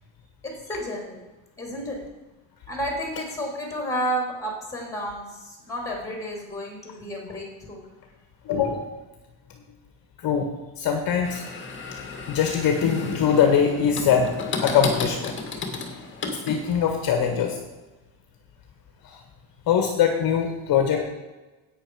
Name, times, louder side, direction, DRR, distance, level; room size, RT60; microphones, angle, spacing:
voice 1, 0.4-1.2 1.6-2.0 2.7-7.8, equal, 5° left, 0 dB, 3.2 m, -31 dB
voice 2, 8.4-8.9 10.2-10.5 10.8-11.4 12.2-15.4 16.5-17.6 19.0-19.2 19.7-21.1, left 7 dB, 45° left, 4 dB, 1.4 m, -22 dB
sound 1, 11.2-17.0, left 4 dB, 25° left, 1.8 m, -33 dB
11.0 x 8.8 x 4.8 m, 1.2 s
cardioid pair, 155°, 48 cm